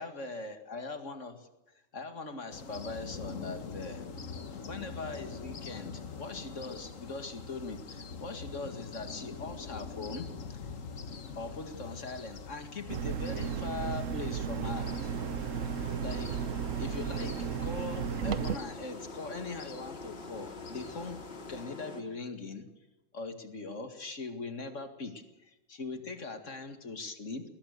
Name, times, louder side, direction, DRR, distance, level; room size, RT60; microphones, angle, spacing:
voice 1, 0.0-1.5 1.9-4.0 4.7-10.7 11.4-14.9 16.0-16.4 16.8-21.2 21.5-22.6 23.1-27.4, left 3 dB, 75° left, 7 dB, 2.4 m, -41 dB
sound 1, 2.5-21.7, left 5 dB, 90° left, 1.7 m, -45 dB
sound 2, 12.9-18.6, right 7 dB, 80° right, 1.3 m, -34 dB
sound 3, 14.6-22.0, left 3 dB, 55° left, 2.6 m, -46 dB
20.5 x 19.0 x 6.6 m, 0.97 s
omnidirectional pair, 1.3 m